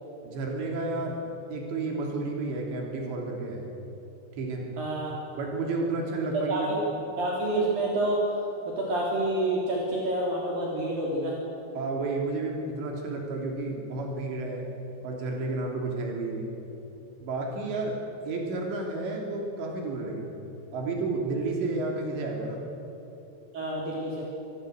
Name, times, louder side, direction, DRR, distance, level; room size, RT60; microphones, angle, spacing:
voice 1, 0.2-1.2 1.5-3.7 4.3-4.6 5.3-6.7 11.8-14.7 15.0-16.5 17.2-18.0 18.3-20.3 20.7-22.6, right 3 dB, 85° right, 0 dB, 5.3 m, -31 dB
voice 2, 4.8-5.2 6.3-6.8 7.2-11.4 23.5-24.2, right 1 dB, 55° right, -3 dB, 5.0 m, -28 dB
25.5 x 22.5 x 8.0 m, 3.0 s
omnidirectional pair, 4.9 m